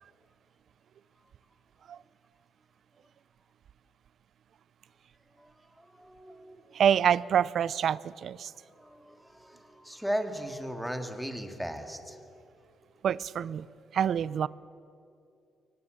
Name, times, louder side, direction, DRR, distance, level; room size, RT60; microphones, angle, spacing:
voice 1, 5.4-6.8 8.4-12.4, equal, ahead, 6 dB, 2.3 m, -38 dB
voice 2, 6.7-8.5 13.0-13.7 13.9-14.5, right 8 dB, 60° right, 20 dB, 0.6 m, -26 dB
23.5 x 18.5 x 8.1 m, 2.6 s
cardioid pair, 90°, 0 cm